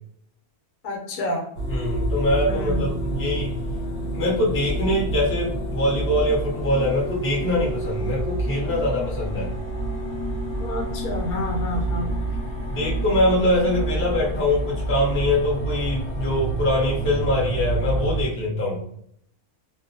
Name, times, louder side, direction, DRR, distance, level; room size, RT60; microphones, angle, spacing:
voice 1, 0.8-1.5 2.5-2.8 10.6-12.1, left 1 dB, 85° left, 1 dB, 1.1 m, -29 dB
sound 1, 1.6-18.2, right 2 dB, 65° left, 0.9 m, -28 dB
voice 2, 1.7-3.5 4.1-9.5 11.9-12.1 12.7-18.8, left 1 dB, 15° left, -4 dB, 0.5 m, -23 dB
2.5 x 2.0 x 2.6 m, 0.68 s
omnidirectional pair, 1.6 m